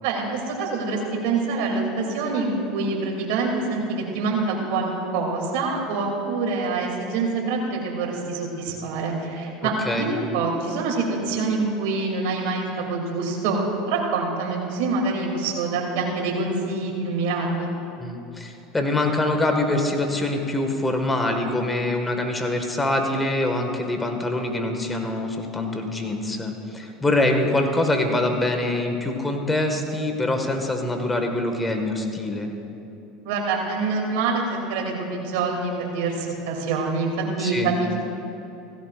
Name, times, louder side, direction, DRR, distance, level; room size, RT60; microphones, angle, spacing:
voice 1, 0.0-3.8 4.1-17.7 33.2-34.4 34.7-37.1 37.4-38.0, right 3 dB, 70° right, -1 dB, 2.8 m, -26 dB
voice 2, 9.6-10.1 18.0-32.5 37.4-37.7, left 2 dB, 15° left, 4 dB, 1.7 m, -24 dB
17.0 x 15.5 x 2.5 m, 2.9 s
hypercardioid pair, 90°, 0 cm